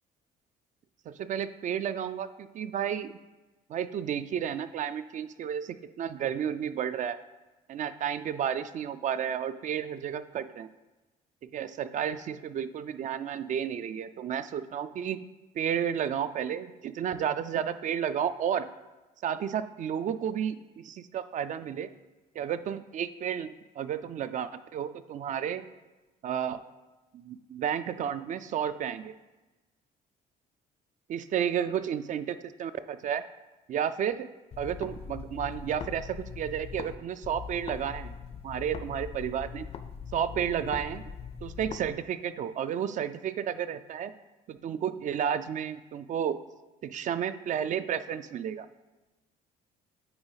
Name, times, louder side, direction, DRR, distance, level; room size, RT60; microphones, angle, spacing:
voice 1, 1.1-3.1 3.7-7.2 7.7-10.7 11.5-15.2 15.6-18.7 19.2-21.9 22.4-25.6 26.2-26.6 27.1-29.1 31.1-33.2 33.7-34.3 34.6-38.1 38.4-39.7 40.1-41.0 41.4-44.1 44.5-46.4 46.8-48.7, right 9 dB, 50° right, 12 dB, 0.4 m, -32 dB
sound 1, 34.5-37.0 37.2-41.9, left 6 dB, 35° left, 0.5 m, -41 dB
8.7 x 4.0 x 4.0 m, 1.1 s
cardioid pair, 110°, 17 cm